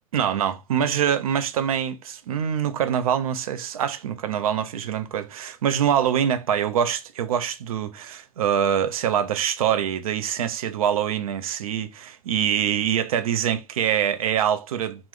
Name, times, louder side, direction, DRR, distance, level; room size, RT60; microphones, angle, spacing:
voice 1, 0.1-15.1, right 9 dB, 70° right, 0.5 m, -24 dB
2.9 x 2.0 x 3.5 m
figure-of-eight pair, 90°, 19 cm